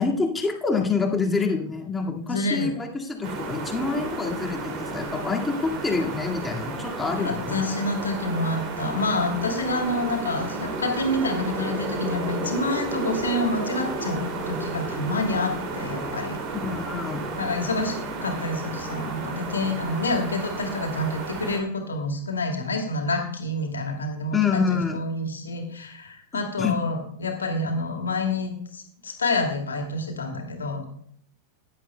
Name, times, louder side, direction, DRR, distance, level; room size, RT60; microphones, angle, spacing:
voice 1, 0.0-7.6 16.5-17.3 24.3-25.0 26.3-26.7, left 4 dB, 10° left, 0 dB, 2.1 m, -27 dB
voice 2, 2.3-2.7 7.2-16.4 17.4-30.8, left 2 dB, 70° left, 3 dB, 2.4 m, -28 dB
sound 1, 3.2-21.6, right 3 dB, 40° right, 2.6 m, -32 dB
16.0 x 11.0 x 2.3 m, 0.63 s
figure-of-eight pair, 90°, 0 cm